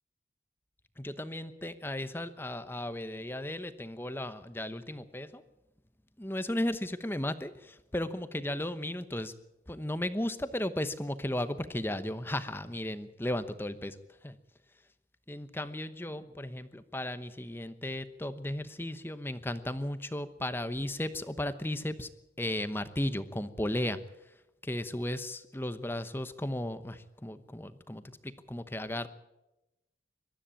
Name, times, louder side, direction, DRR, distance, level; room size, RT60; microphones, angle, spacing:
voice 1, 1.0-5.4 6.2-9.3 9.7-13.9 14.2-14.3 15.3-22.1 22.4-24.0 24.6-29.1, left 1 dB, 10° left, 11 dB, 1.0 m, -35 dB
22.5 x 13.5 x 8.8 m, 0.94 s
head